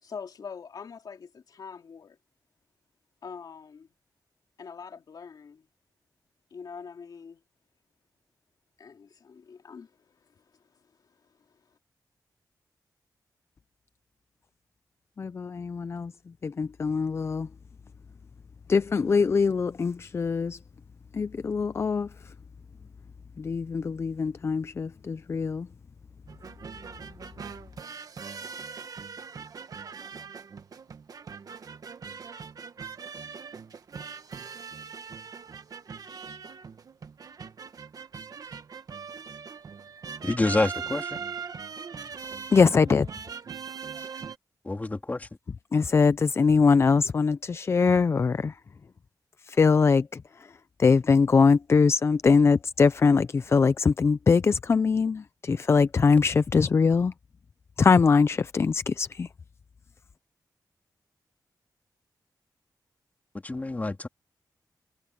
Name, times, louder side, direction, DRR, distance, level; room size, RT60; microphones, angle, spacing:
voice 1, 0.0-2.2 3.2-3.9 4.6-5.7 6.5-7.4 8.8-10.4, left 6 dB, 65° left, 2.8 m, -44 dB
voice 2, 15.2-16.1 16.4-17.5 18.7-20.6 21.1-22.1 23.4-25.7 42.5-43.1 45.7-48.6 49.4-50.2 50.8-57.1 57.8-59.3, left 5 dB, 35° left, 0.4 m, -22 dB
sound 1, 26.3-44.4, right 6 dB, 60° right, 1.3 m, -41 dB
voice 3, 40.2-41.2 44.6-45.3 63.3-64.1, left 2 dB, 20° left, 3.0 m, -28 dB
wide cardioid pair, 130°, 7 cm